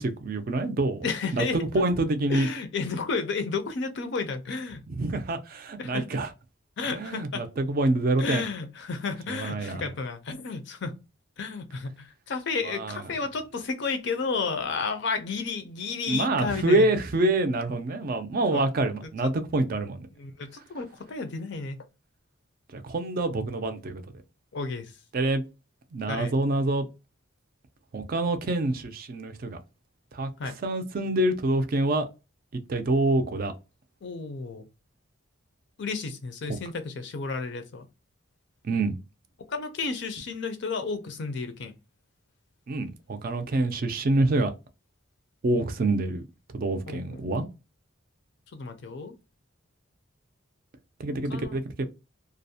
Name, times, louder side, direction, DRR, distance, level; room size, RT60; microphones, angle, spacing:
voice 1, 0.0-1.1 1.3-2.5 4.9-6.3 6.9-8.4 9.3-9.9 12.6-13.0 16.1-20.0 22.7-24.0 25.1-25.4 25.9-26.9 27.9-29.6 30.1-32.1 32.5-33.5 36.5-36.6 38.6-39.0 42.7-44.5 45.4-46.2 46.5-47.5 51.0-51.9, right 2 dB, 45° right, 0.4 m, -26 dB
voice 2, 1.0-1.8 2.3-4.8 5.8-6.1 6.8-7.5 8.2-10.9 11.4-16.9 18.5-18.7 19.0-19.3 20.2-21.8 24.5-24.9 26.1-26.3 30.4-30.6 34.0-34.6 35.8-37.9 39.5-41.7 46.9-47.2 48.5-49.2 51.3-51.6, left 4 dB, 55° left, 0.4 m, -32 dB
2.4 x 2.0 x 2.6 m
head